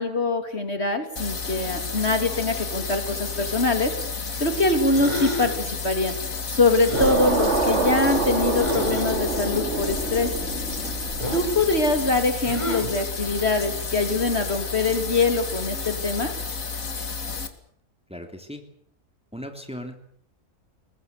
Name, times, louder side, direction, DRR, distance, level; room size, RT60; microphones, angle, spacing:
voice 1, 0.0-4.0 4.4-6.2 6.5-10.4 11.3-16.3, left 3 dB, 45° left, 6 dB, 3.3 m, -23 dB
sound 1, 1.2-17.5, left 4 dB, 65° left, 2.6 m, -31 dB
sound 2, 4.9-5.7 6.8-7.2 8.6-9.1 11.2-11.6 12.5-13.0, left 1 dB, 20° left, 6.0 m, -30 dB
sound 3, 6.9-12.2, right 3 dB, 50° right, 2.9 m, -26 dB
voice 2, 18.1-18.6 19.3-20.0, equal, 5° right, 5 dB, 3.1 m, -37 dB
22.5 x 20.0 x 8.3 m, 0.66 s
omnidirectional pair, 1.5 m